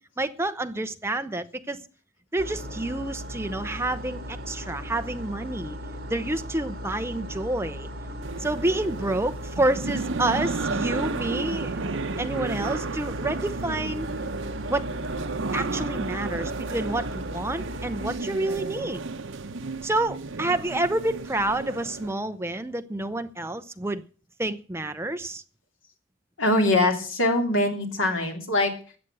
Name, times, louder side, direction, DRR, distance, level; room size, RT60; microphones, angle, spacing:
voice 1, 0.2-1.8 2.3-5.8 6.1-7.9 8.4-11.8 12.2-14.1 14.7-14.9 15.5-19.0 19.8-24.0 24.4-25.4, right 2 dB, 15° right, 0.7 m, -28 dB
sound 1, 2.4-18.1, equal, 50° right, 2.9 m, -37 dB
sound 2, 8.2-22.1, right 3 dB, 75° right, 0.8 m, -33 dB
voice 2, 26.4-28.7, left 1 dB, 85° left, 3.2 m, -23 dB
13.0 x 8.2 x 7.9 m
head